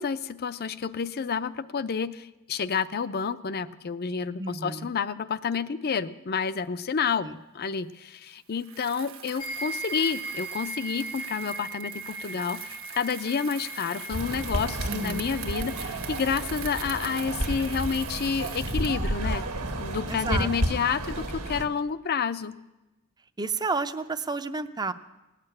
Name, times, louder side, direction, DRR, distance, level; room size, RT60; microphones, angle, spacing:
voice 1, 0.0-7.3 7.5-19.4 19.8-22.6, left 6 dB, 45° left, 14 dB, 0.5 m, -29 dB
voice 2, 4.4-4.9 7.2-7.4 14.9-15.3 20.1-20.8 23.4-24.9, right 3 dB, 20° right, 11 dB, 0.5 m, -31 dB
Bicycle, 8.6-19.1, right 10 dB, 65° right, 1.2 m, -42 dB
sound 1, 9.4-18.1, right 2 dB, 90° left, 1.6 m, -40 dB
sound 2, 14.1-21.7, right 1 dB, 85° right, 1.7 m, -31 dB
18.0 x 6.7 x 9.8 m, 1.0 s
head